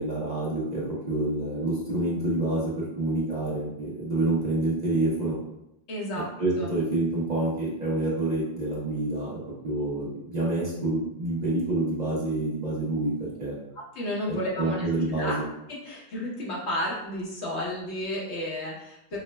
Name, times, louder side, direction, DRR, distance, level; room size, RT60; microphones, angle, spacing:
voice 1, 0.0-5.4 6.4-13.5 14.6-15.4, right 2 dB, 40° right, -6 dB, 1.0 m, -27 dB
voice 2, 5.9-6.3 6.6-6.7 13.8-14.9 15.2-15.3 15.8-19.2, left 1 dB, 90° left, -4 dB, 1.2 m, -32 dB
4.8 x 2.1 x 2.2 m, 0.82 s
omnidirectional pair, 1.1 m